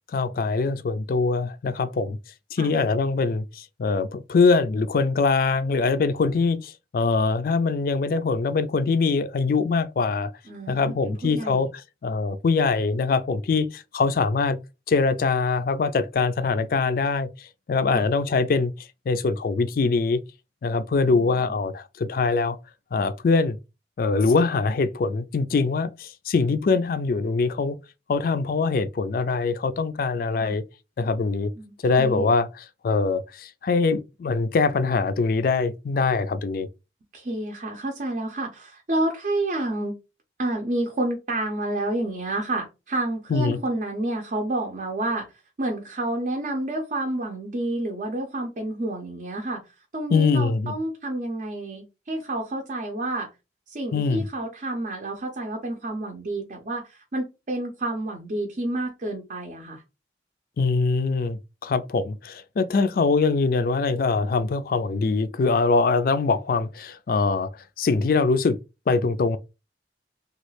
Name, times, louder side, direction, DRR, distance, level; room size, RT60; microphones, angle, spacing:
voice 1, 0.1-2.2 2.5-10.3 10.7-11.7 12.0-14.6 14.9-18.7 19.1-20.2 20.6-22.6 22.9-23.6 24.0-27.8 28.1-30.6 31.0-31.5 31.8-36.7 43.3-43.6 50.1-50.7 53.9-54.3 60.6-67.5 67.8-68.6 68.9-69.4, left 4 dB, 55° left, 0.3 m, -23 dB
voice 2, 10.5-11.7 17.9-18.1 21.0-21.5 30.4-30.5 31.6-32.3 37.1-40.0 40.4-45.3 45.6-49.6 49.9-53.3 53.7-59.8, right 1 dB, 45° right, 0.6 m, -29 dB
3.0 x 2.3 x 3.1 m
head